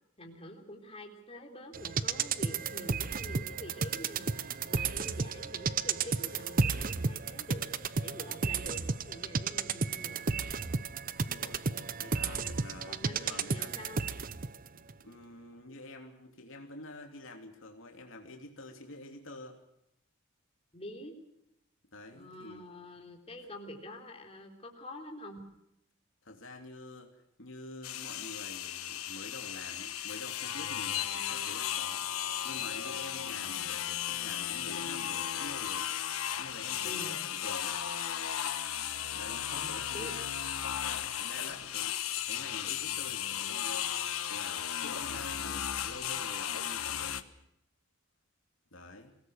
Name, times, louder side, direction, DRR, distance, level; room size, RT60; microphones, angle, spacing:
voice 1, 0.2-10.7 11.4-11.6 12.3-14.0 20.7-21.1 22.1-25.4 33.4-33.6 36.8-37.2 39.5-40.1, left 1 dB, 30° left, 2 dB, 3.7 m, -47 dB
sound 1, 1.7-14.6 14.9-15.0, right 5 dB, 40° right, 0.7 m, -33 dB
voice 2, 11.2-11.6 12.0-13.8 14.7-19.6 21.9-22.6 26.2-32.0 32.4-35.9 36.4-37.8 39.1-40.3 40.6-42.0 42.3-47.2 48.7-49.1, left 2 dB, 65° left, 3 dB, 3.0 m, -47 dB
sound 2, 27.8-47.2, left 10 dB, 90° left, 1.3 m, -35 dB
25.0 x 18.5 x 6.5 m, 0.80 s
head